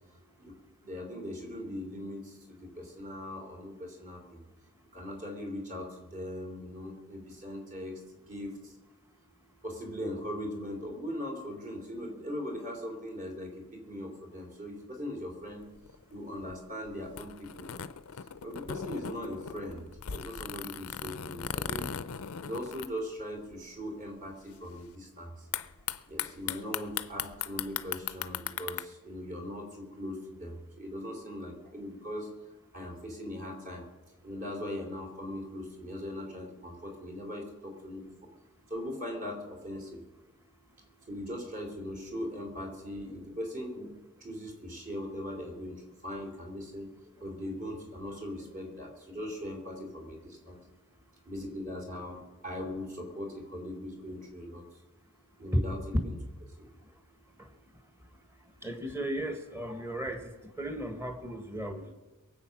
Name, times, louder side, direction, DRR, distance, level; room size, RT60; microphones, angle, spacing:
voice 1, 0.8-4.4 4.9-8.7 9.6-15.7 16.1-17.8 18.1-21.9 22.4-25.5 26.1-32.3 32.7-33.8 34.2-38.1 38.7-40.0 41.1-43.9 44.2-46.9 47.2-50.6 51.3-54.7 55.4-55.8 56.0-56.2 56.6-56.7, left 1 dB, 40° right, 1 dB, 3.4 m, -40 dB
sound 1, 15.5-23.5 23.8-23.9 24.1-24.5 25.5-28.8, left 8 dB, 75° left, 0.6 m, -38 dB
voice 2, 58.6-60.3 60.6-61.9, equal, 10° right, 6 dB, 1.4 m, -33 dB
22.5 x 7.9 x 6.0 m, 1.2 s
head